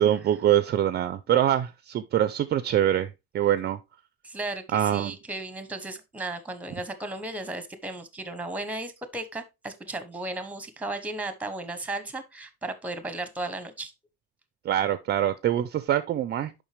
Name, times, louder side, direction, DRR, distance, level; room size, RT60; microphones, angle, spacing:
voice 1, 0.0-3.8 4.7-5.2 14.6-16.6, right 11 dB, 35° right, 0.4 m, -24 dB
voice 2, 4.2-13.9, right 2 dB, 5° right, 0.8 m, -35 dB
7.1 x 5.5 x 3.2 m
cardioid pair, 155°, 29 cm